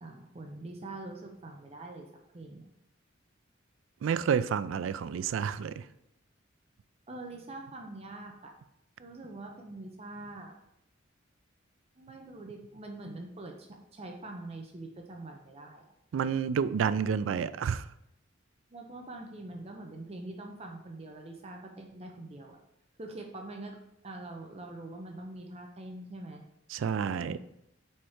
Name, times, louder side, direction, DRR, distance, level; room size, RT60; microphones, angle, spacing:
voice 1, 0.0-2.7 7.1-8.5 9.0-10.6 12.0-15.9 18.7-22.6 23.0-23.8 24.0-26.4 27.2-27.4, right 2 dB, 30° right, 2 dB, 0.6 m, -44 dB
voice 2, 4.0-5.8 16.1-17.8 26.7-27.4, right 7 dB, 80° right, 15 dB, 0.3 m, -29 dB
4.4 x 4.4 x 4.9 m, 0.82 s
head